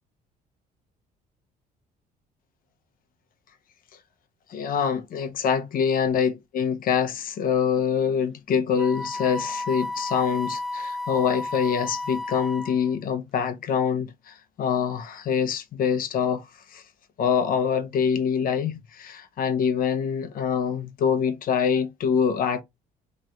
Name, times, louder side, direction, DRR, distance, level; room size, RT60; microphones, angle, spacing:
voice 1, 4.5-16.5 16.7-16.8 17.2-22.6, left 7 dB, 55° left, 0.8 m, -25 dB
Wind instrument woodwind instrument, 8.8-12.9, left 2 dB, ahead, 0.5 m, -32 dB
3.0 x 2.5 x 4.3 m
cardioid pair, 110°, 17 cm